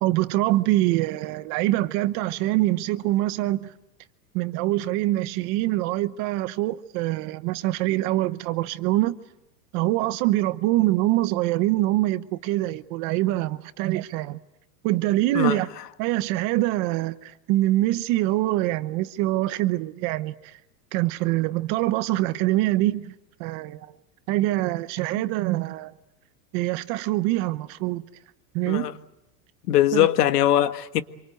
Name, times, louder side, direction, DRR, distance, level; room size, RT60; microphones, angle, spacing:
voice 1, 0.0-3.7 4.3-9.2 9.7-14.4 14.8-15.7 16.0-20.6 20.9-23.1 23.4-23.9 24.3-25.9 26.5-28.1 28.5-28.9 29.9-30.1, right 17 dB, 35° right, 0.9 m, -24 dB
voice 2, 29.7-31.0, left 12 dB, 70° left, 1.7 m, -21 dB
26.5 x 24.0 x 8.0 m
supercardioid pair, 155°, 48 cm